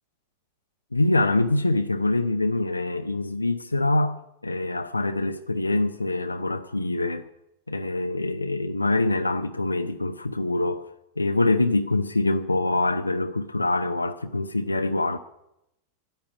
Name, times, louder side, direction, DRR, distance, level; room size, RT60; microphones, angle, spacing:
voice 1, 0.9-7.3 7.7-10.9 11.2-15.2, left 2 dB, 80° left, 0.6 m, -25 dB
11.5 x 9.0 x 10.0 m
figure-of-eight pair, 90°, 0 cm